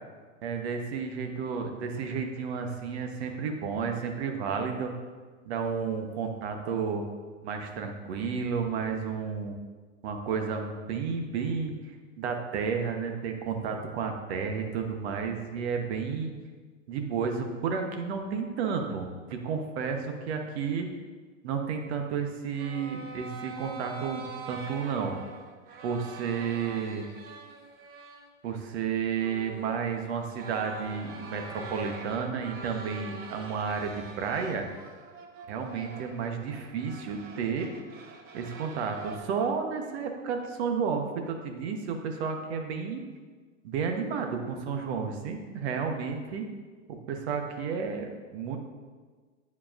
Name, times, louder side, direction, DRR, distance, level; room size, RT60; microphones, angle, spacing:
voice 1, 0.4-4.9 5.5-7.0 7.4-9.5 10.0-16.3 16.9-20.9 21.4-25.1 25.8-27.1 28.4-34.7 35.5-37.7 38.3-43.0 43.6-46.4 47.1-48.6, right 6 dB, 55° right, 4 dB, 1.1 m, -32 dB
sound 1, 22.6-28.3 28.7-28.8 29.1-39.2, right 4 dB, 25° right, 0.6 m, -44 dB
9.6 x 4.6 x 2.5 m, 1.4 s
hypercardioid pair, 120°, 40 cm